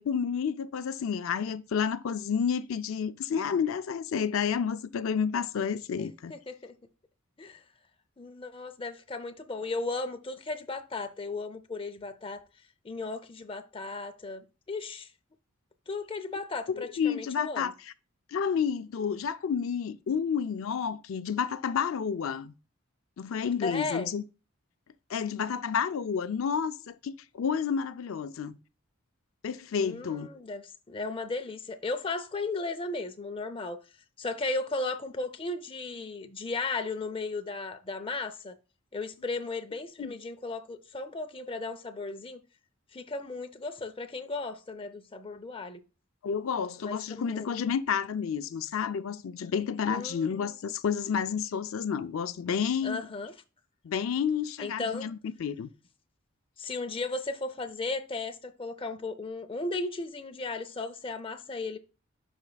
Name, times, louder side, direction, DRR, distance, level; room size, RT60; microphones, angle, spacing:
voice 1, 0.0-6.3 16.7-17.9 18.3-22.5 23.2-24.2 25.1-28.6 29.4-30.3 40.0-40.1 46.2-53.1 53.8-55.7, left 7 dB, 80° left, 0.4 m, -30 dB
voice 2, 6.0-6.8 7.4-7.6 8.2-12.4 12.8-15.1 15.9-17.7 23.6-24.1 29.8-33.8 34.2-38.5 38.9-42.4 42.9-45.8 46.8-47.7 49.9-50.5 52.8-53.3 54.6-55.1 56.6-61.8, left 3 dB, 25° left, 0.5 m, -35 dB
10.5 x 4.3 x 2.3 m
head